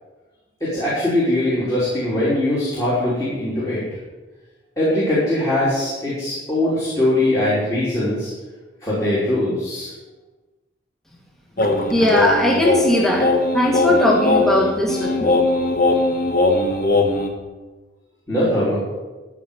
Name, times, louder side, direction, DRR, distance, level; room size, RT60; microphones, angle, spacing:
voice 1, 0.6-3.8 4.8-8.3 8.8-9.9 18.3-18.8, left 1 dB, 20° left, -10 dB, 3.4 m, -21 dB
sound 1, 11.6-17.3, left 2 dB, 50° left, 1.5 m, -19 dB
voice 2, 11.9-15.4, left 1 dB, ahead, -1 dB, 1.5 m, -19 dB
14.0 x 5.0 x 8.4 m, 1.2 s
head